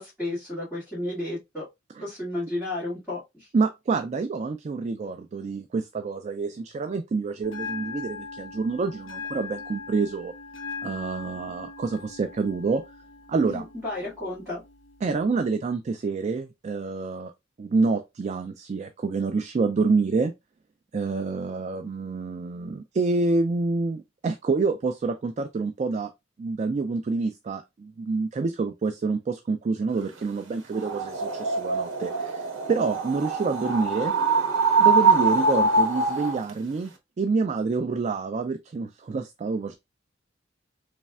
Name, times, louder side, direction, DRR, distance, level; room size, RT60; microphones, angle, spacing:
voice 1, 0.0-1.6 2.0-3.5 13.5-14.6, left 1 dB, ahead, 2.2 m, -32 dB
voice 2, 3.5-10.3 10.8-12.8 13.3-13.6 15.0-17.3 17.6-20.3 20.9-26.1 26.4-34.1 34.8-36.9 37.2-39.7, right 4 dB, 35° right, 0.3 m, -27 dB
Bell, 7.4-15.4, left 4 dB, 75° left, 1.3 m, -40 dB
sound 1, 30.7-36.5, right 4 dB, 70° right, 0.9 m, -23 dB
4.2 x 3.2 x 2.3 m
head